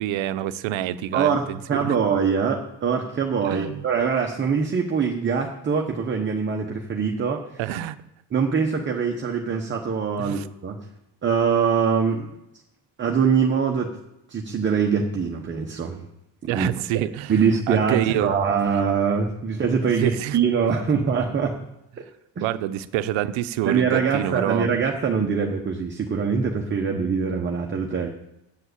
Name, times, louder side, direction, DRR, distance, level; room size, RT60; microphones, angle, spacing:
voice 1, 0.0-2.0 3.4-3.8 7.6-8.0 10.2-10.5 16.5-17.3 17.7-18.3 20.0-20.4 21.0-21.1 22.4-24.7, right 12 dB, 80° right, 12 dB, 0.8 m, -26 dB
voice 2, 1.1-1.4 1.7-7.4 8.3-10.8 11.2-12.3 13.0-14.0 14.3-16.1 16.4-16.7 17.3-21.5 22.4-22.5 23.6-28.1, right 6 dB, 25° right, 1 dB, 1.0 m, -23 dB
9.1 x 7.4 x 8.2 m, 0.87 s
cardioid pair, 160°, 46 cm